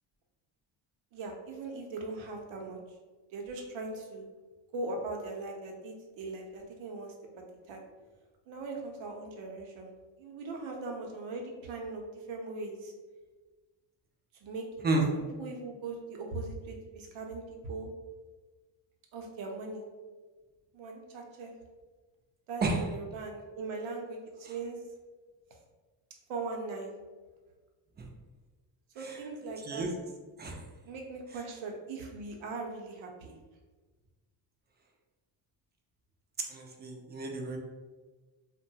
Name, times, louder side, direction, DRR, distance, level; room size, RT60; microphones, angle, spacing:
voice 1, 1.1-2.8 3.3-4.3 4.7-7.1 7.7-7.8 8.5-9.9 10.2-12.9 14.4-14.9 15.1-17.9 19.1-19.8 20.7-21.5 22.5-24.8 26.3-26.9 28.9-29.9 30.8-33.4, right 3 dB, 70° right, 1 dB, 0.7 m, -40 dB
voice 2, 36.5-37.6, right 2 dB, 20° right, 1 dB, 0.4 m, -31 dB
2.8 x 2.2 x 2.7 m, 1.3 s
cardioid pair, 90°, 48 cm